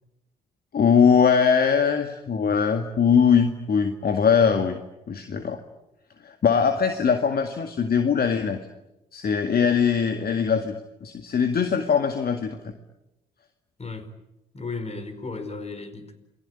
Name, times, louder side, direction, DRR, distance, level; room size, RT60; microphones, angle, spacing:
voice 1, 0.7-4.8 5.1-5.6 6.2-8.6 9.1-10.8 11.0-12.6, left 6 dB, 50° left, 2.1 m, -21 dB
voice 2, 14.5-16.2, left 3 dB, 30° left, 4.7 m, -34 dB
28.5 x 21.0 x 10.0 m
hypercardioid pair, 50°, 21 cm